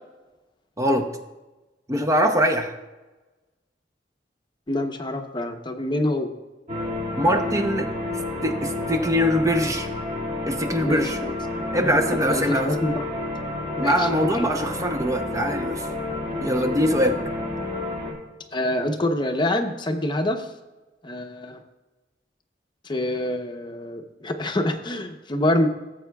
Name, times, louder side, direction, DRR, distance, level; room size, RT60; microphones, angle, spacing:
voice 1, 0.8-1.1 1.9-2.7 7.2-9.9 10.5-11.2 11.7-12.7 13.8-15.9 16.4-17.2, equal, 20° right, 5 dB, 0.7 m, -23 dB
voice 2, 4.7-6.3 10.8-11.4 11.7-13.0 13.8-14.5 16.2-16.5 18.5-20.5 21.0-21.6 22.8-25.7, left 1 dB, 25° left, 5 dB, 0.7 m, -26 dB
sound 1, 6.7-18.1, left 2 dB, 40° right, 2.0 m, -30 dB
17.5 x 7.7 x 2.3 m, 1.1 s
head